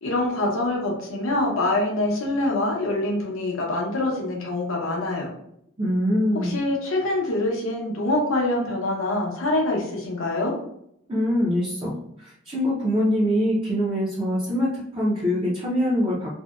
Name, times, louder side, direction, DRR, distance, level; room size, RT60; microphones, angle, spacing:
voice 1, 0.0-5.3 6.3-10.5, left 2 dB, 75° left, -1 dB, 0.7 m, -25 dB
voice 2, 5.8-6.6 11.1-16.4, equal, 25° right, -7 dB, 0.5 m, -24 dB
2.6 x 2.1 x 2.3 m, 0.74 s
head